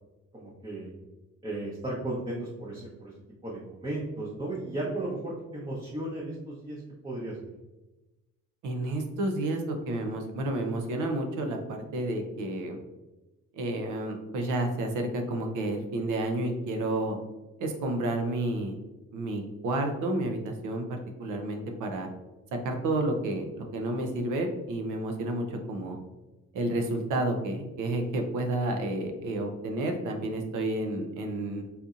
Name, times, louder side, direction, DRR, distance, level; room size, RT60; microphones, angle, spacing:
voice 1, 0.3-0.9 1.4-3.1 3.4-7.4, right 2 dB, 15° right, -6 dB, 0.8 m, -35 dB
voice 2, 8.6-12.8 13.5-17.2 17.6-18.8 19.1-22.1 22.6-26.0 26.5-31.6, right 1 dB, 80° right, 4 dB, 0.7 m, -30 dB
4.2 x 2.6 x 2.4 m, 1.1 s
cardioid pair, 90°, 30 cm